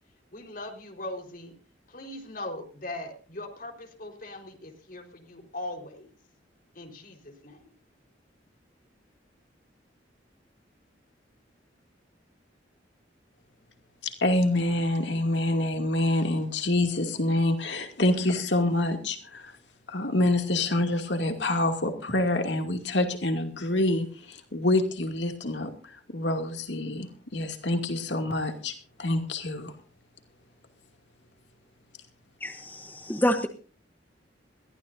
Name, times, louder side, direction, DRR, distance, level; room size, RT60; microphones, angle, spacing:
voice 1, 0.3-1.5 1.9-6.1 6.7-7.7, left 1 dB, 50° left, 3 dB, 4.3 m, -40 dB
voice 2, 14.0-19.5 19.9-28.7 29.0-29.7, left 1 dB, 75° left, 5 dB, 2.5 m, -26 dB
voice 3, 32.4-33.5, left 1 dB, 10° left, 6 dB, 1.0 m, -27 dB
21.5 x 15.0 x 2.7 m, 0.40 s
head